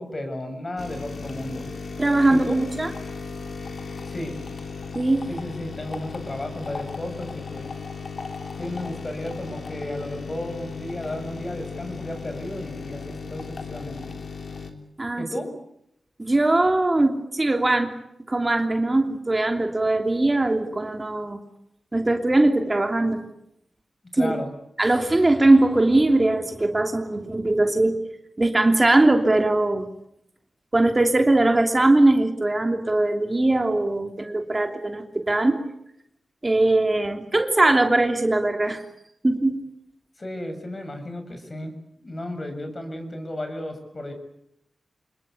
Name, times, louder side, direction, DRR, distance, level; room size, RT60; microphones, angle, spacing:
voice 1, 0.0-1.7 2.3-2.6 4.0-4.4 5.3-7.7 8.6-14.1 15.2-15.5 24.1-24.5 40.2-41.7 42.0-44.1, left 1 dB, 40° left, 7 dB, 7.2 m, -33 dB
sound 1, 0.8-14.7, left 4 dB, 65° left, 3.5 m, -36 dB
voice 2, 2.0-2.9 4.9-5.3 15.0-15.2 16.2-18.0 18.3-21.4 21.9-23.2 24.2-24.3 24.8-28.0 28.4-29.9 30.7-35.6 36.4-38.8 39.2-39.6, right 2 dB, 30° right, 5 dB, 2.9 m, -20 dB
26.5 x 21.5 x 8.5 m, 0.77 s
cardioid pair, 50°, 0 cm